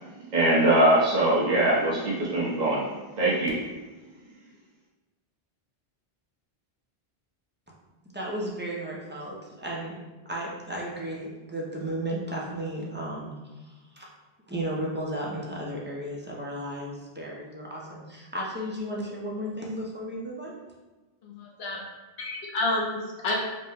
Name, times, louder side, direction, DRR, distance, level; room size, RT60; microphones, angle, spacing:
voice 1, 0.3-2.9 3.2-3.6, right 1 dB, 45° right, -5 dB, 1.0 m, -22 dB
voice 2, 8.1-9.9 10.3-13.4 13.6-14.1 14.5-20.5, right 1 dB, 15° right, -4 dB, 0.5 m, -34 dB
voice 3, 21.2-21.8 22.2-23.4, left 2 dB, 75° left, -1 dB, 1.0 m, -29 dB
4.2 x 2.2 x 3.5 m, 1.2 s
omnidirectional pair, 1.1 m